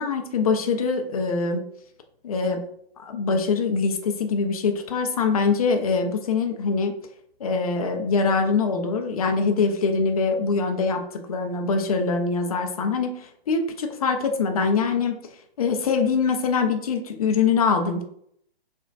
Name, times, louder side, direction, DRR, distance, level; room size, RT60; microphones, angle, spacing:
voice 1, 0.0-1.6 2.2-2.6 3.0-7.0 7.4-11.0 11.3-15.2 15.6-18.0, left 4 dB, 35° left, 4 dB, 0.4 m, -23 dB
4.1 x 2.1 x 2.5 m, 0.68 s
figure-of-eight pair, 130°, 31 cm